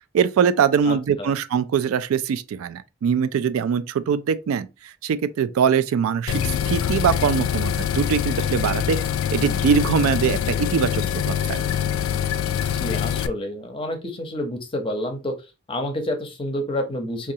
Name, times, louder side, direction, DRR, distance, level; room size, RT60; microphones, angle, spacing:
voice 1, 0.1-9.0 9.3-11.6, right 7 dB, 85° right, 0.3 m, -22 dB
voice 2, 0.9-1.3 12.7-15.3 15.7-17.3, left 1 dB, 25° left, 0.6 m, -29 dB
sound 1, 6.3-13.3, left 9 dB, 80° left, 0.3 m, -24 dB
3.9 x 2.3 x 2.7 m
head